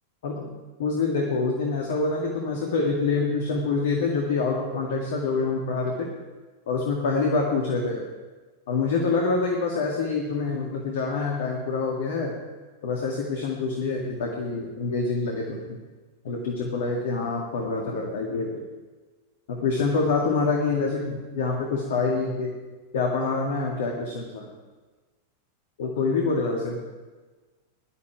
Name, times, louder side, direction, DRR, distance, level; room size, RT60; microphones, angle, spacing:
voice 1, 0.8-6.1 6.7-8.0 8.7-12.3 12.8-15.6 16.2-18.6 19.5-22.5 22.9-24.5 25.8-26.8, left 4 dB, 55° left, 0 dB, 2.1 m, -26 dB
19.0 x 12.0 x 4.8 m, 1.3 s
figure-of-eight pair, 90°, 0 cm